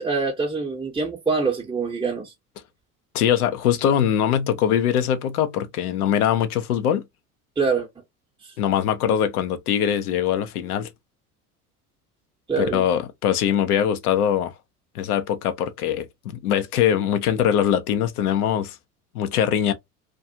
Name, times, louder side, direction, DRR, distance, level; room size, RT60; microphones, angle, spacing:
voice 1, 0.0-2.3 7.6-7.9 12.5-12.9, right 4 dB, 10° right, 0.7 m, -24 dB
voice 2, 3.1-7.0 8.6-10.9 12.6-14.5 14.9-18.8 19.1-19.7, left 9 dB, 80° left, 0.6 m, -22 dB
2.4 x 2.3 x 2.6 m
hypercardioid pair, 70°, 44 cm